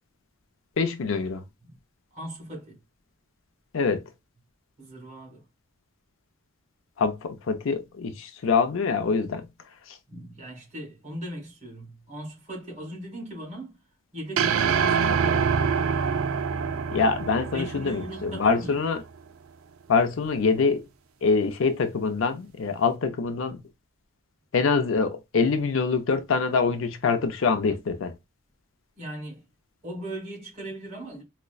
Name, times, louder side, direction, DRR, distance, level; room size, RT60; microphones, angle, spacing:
voice 1, 0.8-1.5 3.7-4.0 7.0-9.5 9.9-10.0 16.9-19.0 19.9-20.8 21.2-23.6 24.5-28.1, left 4 dB, 65° left, 0.5 m, -25 dB
voice 2, 2.1-2.8 4.8-5.4 10.1-13.8 14.1-15.8 17.3-18.8 29.0-29.4 29.8-31.2, right 1 dB, 35° right, 2.1 m, -38 dB
sound 1, 14.4-18.7, right 6 dB, 80° right, 0.4 m, -25 dB
4.9 x 2.2 x 2.3 m
head